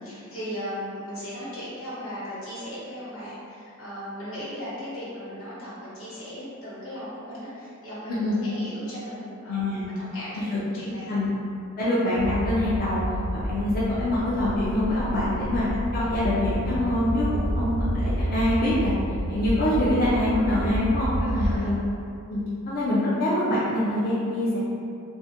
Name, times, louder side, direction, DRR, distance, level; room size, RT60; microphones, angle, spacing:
voice 1, 0.0-11.2 21.3-21.7, equal, 90° left, -10 dB, 1.2 m, -37 dB
voice 2, 8.1-8.4 9.5-9.9 10.3-10.6 10.8-11.3 11.8-13.0 13.3-18.9 19.3-21.8 22.3-24.6, left 1 dB, 45° left, -9 dB, 0.5 m, -25 dB
sound 1, 12.2-21.6, equal, 80° right, 0.4 m, -29 dB
3.4 x 2.1 x 2.8 m, 2.5 s
head